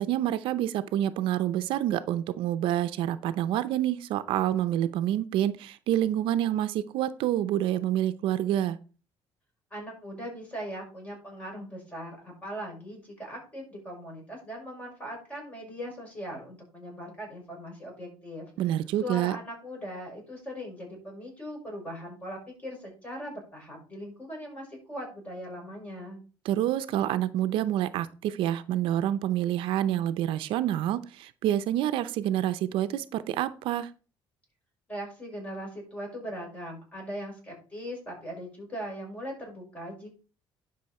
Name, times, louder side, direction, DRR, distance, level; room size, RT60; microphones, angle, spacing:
voice 1, 0.0-8.8 18.6-19.4 26.4-33.9, right 12 dB, 75° right, 12 dB, 0.6 m, -27 dB
voice 2, 9.7-18.5 19.0-26.2 34.9-40.1, equal, 15° left, 0 dB, 5.9 m, -40 dB
11.5 x 5.5 x 4.3 m, 0.35 s
cardioid pair, 130°, 9 cm